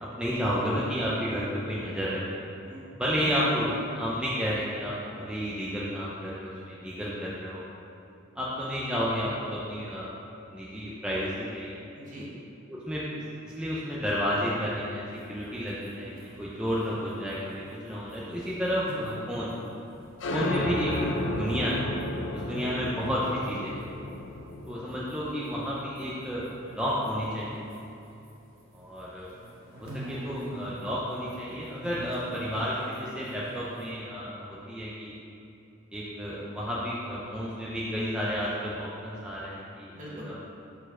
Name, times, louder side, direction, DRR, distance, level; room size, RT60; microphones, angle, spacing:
voice 1, 0.0-2.4 3.0-7.6 8.4-10.1 10.5-11.8 12.9-13.1 13.4-16.1 16.4-19.6 20.3-21.8 22.3-23.8 24.7-27.6 28.7-29.3 29.8-35.1 35.9-39.9 40.2-40.3, equal, 5° right, -7 dB, 0.6 m, -31 dB
voice 2, 2.6-3.3 11.9-12.3 39.9-40.3, equal, 40° right, -6 dB, 1.4 m, -43 dB
sound 1, 15.1-22.1 22.3-28.3 28.6-30.8 31.1-33.9, right 1 dB, 75° right, 1.2 m, -46 dB
sound 2, 20.2-27.5, left 1 dB, 65° left, 0.6 m, -34 dB
4.5 x 4.5 x 5.9 m, 2.8 s
head